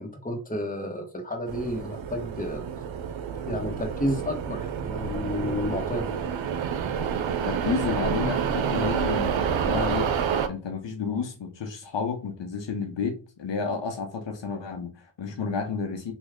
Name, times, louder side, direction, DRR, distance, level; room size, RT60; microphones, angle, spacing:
voice 1, 0.0-2.7 3.5-6.3, left 1 dB, 20° left, 1.0 m, -31 dB
sound 1, 1.5-10.5, right 7 dB, 90° right, 0.5 m, -28 dB
voice 2, 7.5-10.1 10.5-16.1, left 5 dB, 70° left, 0.8 m, -31 dB
3.0 x 2.3 x 3.6 m
cardioid pair, 45°, 45 cm